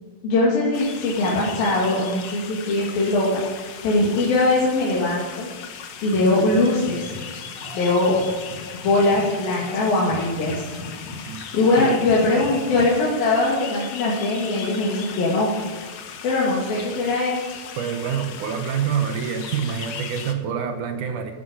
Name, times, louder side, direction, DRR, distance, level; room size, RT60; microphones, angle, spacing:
voice 1, 0.2-5.5 6.0-7.1 7.7-8.1 8.8-10.7 11.5-15.5 16.2-17.5, left 2 dB, 80° left, -6 dB, 4.3 m, -21 dB
sound 1, 0.7-20.3, left 7 dB, 60° left, 1.6 m, -38 dB
sound 2, 5.9-12.9, left 3 dB, 35° left, 1.4 m, -39 dB
voice 2, 17.8-21.3, right 7 dB, 70° right, 6 dB, 2.3 m, -26 dB
15.5 x 11.5 x 6.5 m, 1.3 s
omnidirectional pair, 4.2 m